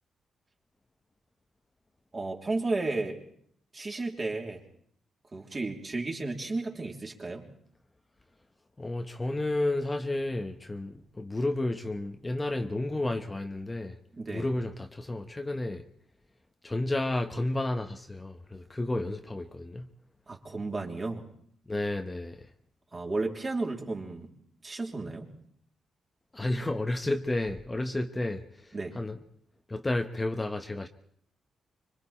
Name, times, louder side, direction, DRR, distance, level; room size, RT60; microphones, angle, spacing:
voice 1, 2.1-3.2 3.7-4.6 5.3-7.5 14.1-14.5 20.3-21.3 22.9-24.3 24.6-25.3 28.7-29.0, right 3 dB, 35° right, 3.3 m, -33 dB
voice 2, 8.8-14.0 14.3-15.9 16.6-19.9 21.7-22.5 26.3-29.2 29.7-30.9, left 2 dB, 20° left, 1.1 m, -31 dB
26.0 x 23.0 x 4.4 m
cardioid pair, 85°, 0 cm